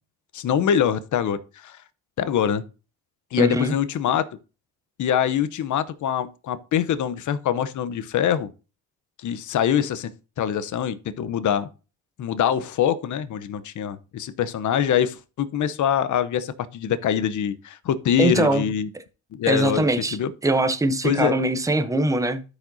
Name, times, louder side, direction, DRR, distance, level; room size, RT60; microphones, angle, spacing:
voice 1, 0.3-1.8 2.2-2.6 3.3-4.2 5.0-8.5 9.2-10.1 10.4-11.7 12.2-18.9 19.3-19.9 20.1-20.3 21.0-21.3, left 9 dB, 45° left, 0.8 m, -24 dB
voice 2, 3.4-3.7 18.2-18.6 19.5-20.2 20.4-22.4, right 2 dB, 10° right, 0.8 m, -22 dB
13.0 x 5.0 x 2.7 m
supercardioid pair, 85°, 41 cm